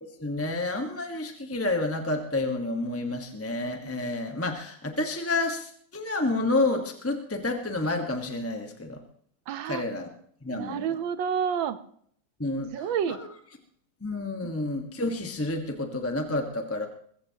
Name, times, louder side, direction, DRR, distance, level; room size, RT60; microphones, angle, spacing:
voice 1, 0.0-9.0 9.7-10.1 10.4-10.9 12.4-12.7 13.1-13.3 14.0-16.9, left 2 dB, 10° left, 4 dB, 1.0 m, -29 dB
voice 2, 9.5-9.8 10.5-11.8 12.7-13.2 14.4-14.5, right 8 dB, 80° right, 11 dB, 1.6 m, -29 dB
22.0 x 14.5 x 2.9 m, 0.62 s
omnidirectional pair, 2.1 m